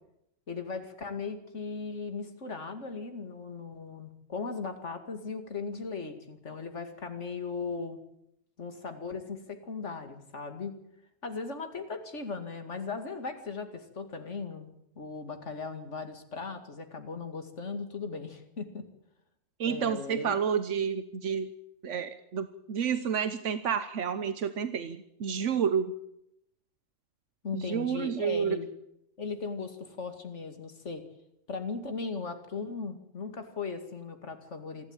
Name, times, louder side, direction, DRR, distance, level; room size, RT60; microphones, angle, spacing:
voice 1, 0.5-8.0 8.6-10.8 11.2-18.8 19.6-20.3 27.4-28.7 29.2-31.0 31.5-34.9, left 4 dB, 80° left, 7 dB, 2.6 m, -38 dB
voice 2, 19.6-21.5 21.8-25.9 27.5-28.6, right 7 dB, 85° right, 11 dB, 1.3 m, -30 dB
27.0 x 12.5 x 8.9 m, 0.78 s
omnidirectional pair, 1.2 m